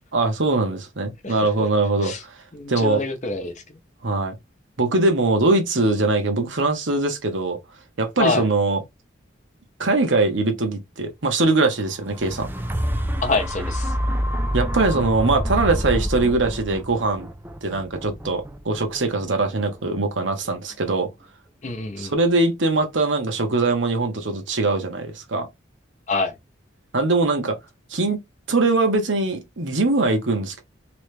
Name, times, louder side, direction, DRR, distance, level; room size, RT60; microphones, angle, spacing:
voice 1, 0.1-2.3 2.7-3.0 4.0-4.4 4.8-7.6 8.0-8.8 9.8-12.5 14.5-17.3 17.6-21.1 22.0-25.5 26.9-27.6 27.9-28.2 28.5-30.6, right 3 dB, 75° right, 1.0 m, -22 dB
voice 2, 2.5-3.8 8.2-8.5 13.2-13.9 21.6-22.1 26.1-26.3, left 3 dB, 35° left, 0.7 m, -26 dB
sound 1, 11.9-20.0 20.5-20.6, equal, 10° right, 0.4 m, -27 dB
3.1 x 3.0 x 3.2 m
head